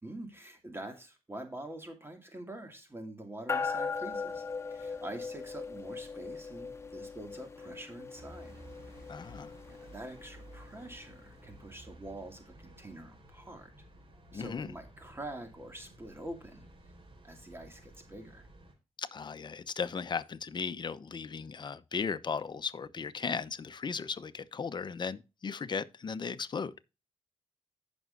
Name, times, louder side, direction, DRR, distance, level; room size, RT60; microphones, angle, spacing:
voice 1, 0.0-8.6 8.9-9.3 9.7-13.7 14.3-16.7 17.2-18.5, right 1 dB, 25° right, 2.3 m, -45 dB
sound 1, 3.5-11.2, left 5 dB, 25° left, 1.4 m, -39 dB
sound 2, 8.1-18.7, right 1 dB, 50° right, 4.3 m, -54 dB
voice 2, 9.1-9.5 14.3-14.7 19.0-26.7, left 5 dB, 45° left, 0.9 m, -36 dB
15.0 x 6.3 x 2.6 m
cardioid pair, 65°, 11 cm